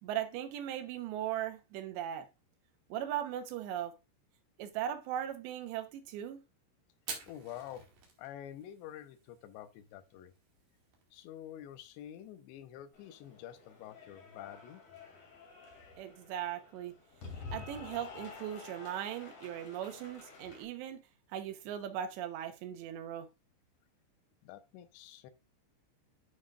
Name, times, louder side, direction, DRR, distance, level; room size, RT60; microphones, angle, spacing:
voice 1, 0.0-2.3 2.9-3.9 4.6-6.4 16.0-16.9 17.5-21.0 21.3-23.3, right 11 dB, 75° right, 3.0 m, -38 dB
Fire, 6.9-16.1, right 5 dB, 55° right, 3.2 m, -53 dB
voice 2, 7.3-7.9 8.2-10.3 11.1-14.8 24.4-25.3, left 11 dB, 75° left, 2.8 m, -48 dB
Cheering / Applause, 12.9-20.6, left 5 dB, 40° left, 2.7 m, -50 dB
11.5 x 6.1 x 2.4 m
omnidirectional pair, 5.5 m